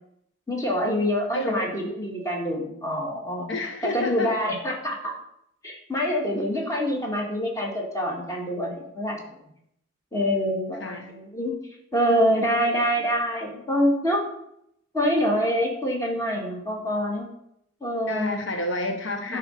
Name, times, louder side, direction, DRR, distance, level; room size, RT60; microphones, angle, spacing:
voice 1, 0.5-3.5 3.8-5.0 5.6-9.4 10.1-11.5 11.9-14.2 14.9-17.3 17.8-18.4 19.3-19.4, equal, 15° left, -2 dB, 2.0 m, -25 dB
voice 2, 1.3-1.7 3.5-4.3 10.8-11.1 18.1-19.4, left 2 dB, 70° left, 4 dB, 1.0 m, -29 dB
9.7 x 4.4 x 6.6 m, 0.76 s
head